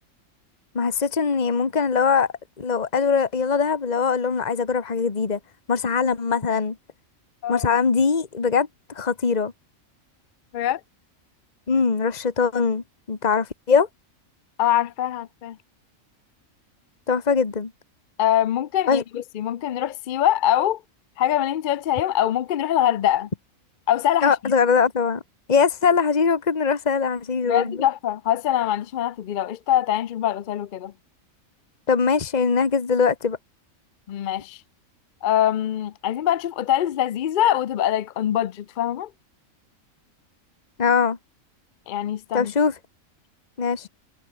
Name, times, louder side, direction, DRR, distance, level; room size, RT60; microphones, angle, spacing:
voice 1, 0.7-2.3 2.6-5.4 5.7-6.7 7.5-8.7 8.9-9.5 11.7-13.9 17.1-17.7 18.9-19.0 24.2-25.2 25.5-27.8 31.9-33.4 40.8-41.2 42.3-42.7 43.6-43.9, left 5 dB, 30° left, 1.5 m, -21 dB
voice 2, 14.6-15.6 18.2-20.8 21.2-23.3 23.9-24.5 27.4-30.9 34.1-34.6 35.2-39.1 41.9-42.5, left 11 dB, 60° left, 0.5 m, -23 dB
omnidirectional pair, 1.4 m